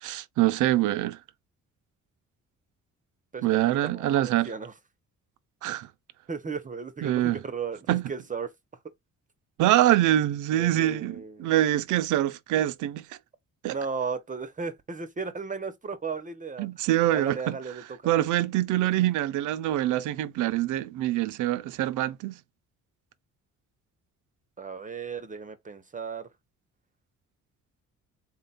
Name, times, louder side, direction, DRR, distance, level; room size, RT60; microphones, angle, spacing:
voice 1, 0.0-1.2 3.4-4.5 5.6-5.9 7.0-7.4 7.9-8.1 9.6-13.0 13.6-13.8 16.6-17.6 18.0-22.4, right 14 dB, 80° right, 0.5 m, -25 dB
voice 2, 3.8-4.7 6.3-8.5 10.5-11.5 13.7-16.7 17.1-18.1 24.6-26.3, right 5 dB, 25° right, 0.6 m, -35 dB
3.6 x 2.2 x 4.1 m
cardioid pair, 90°, 30 cm